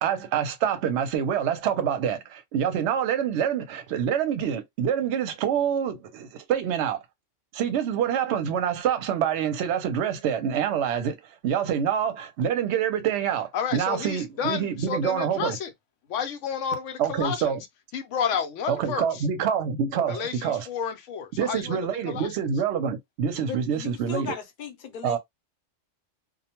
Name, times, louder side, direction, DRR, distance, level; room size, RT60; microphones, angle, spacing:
voice 1, 0.0-7.0 7.5-11.2 11.4-15.6 17.0-17.6 18.7-20.7 21.4-24.4 25.0-25.2, right 8 dB, 70° right, 0.8 m, -26 dB
voice 2, 13.5-15.7 16.1-17.6 17.9-19.2 20.1-21.8 22.1-22.3, left 7 dB, 80° left, 0.9 m, -31 dB
voice 3, 23.4-25.2, left 6 dB, 50° left, 0.8 m, -37 dB
2.4 x 2.1 x 2.9 m
omnidirectional pair, 1.3 m